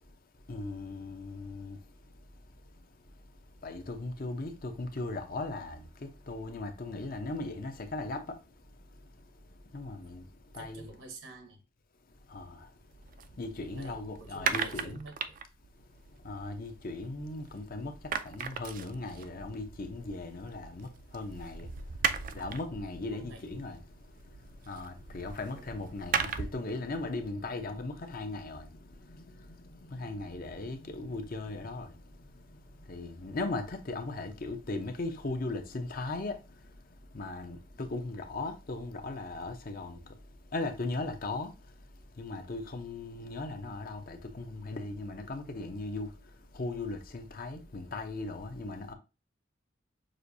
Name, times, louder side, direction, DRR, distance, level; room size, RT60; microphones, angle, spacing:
voice 1, 0.0-10.9 12.1-15.0 15.7-48.9, left 2 dB, 50° left, 0.8 m, -39 dB
voice 2, 10.6-11.6 13.6-15.4 20.5-20.7 23.1-23.4 25.5-25.8, right 2 dB, 80° right, 1.1 m, -50 dB
sound 1, 12.9-17.6 17.8-26.7, right 6 dB, 45° right, 0.4 m, -38 dB
6.4 x 2.6 x 2.7 m
head